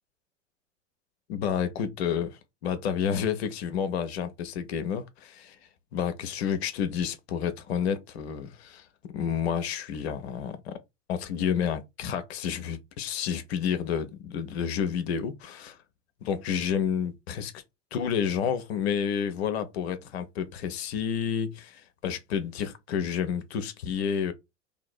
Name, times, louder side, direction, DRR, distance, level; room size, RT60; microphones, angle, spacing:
voice 1, 1.3-5.6 5.9-10.8 11.1-15.8 16.2-17.6 17.9-24.3, left 8 dB, 55° left, 0.8 m, -30 dB
2.9 x 2.8 x 4.2 m
figure-of-eight pair, 80°, 37 cm